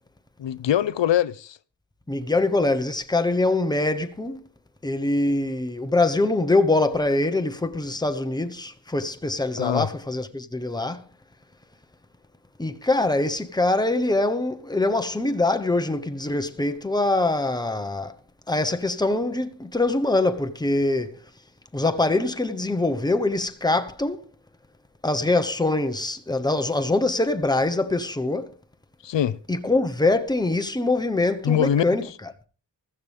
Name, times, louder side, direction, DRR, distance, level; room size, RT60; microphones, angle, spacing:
voice 1, 0.4-1.6 9.6-9.9 29.0-29.4 31.4-31.8, left 10 dB, 75° left, 0.8 m, -23 dB
voice 2, 2.1-4.4 4.8-11.0 12.6-18.1 18.5-21.2 21.7-24.2 25.0-28.5 29.5-32.3, left 2 dB, 10° left, 1.0 m, -24 dB
15.5 x 14.5 x 3.5 m
wide cardioid pair, 140°, 43 cm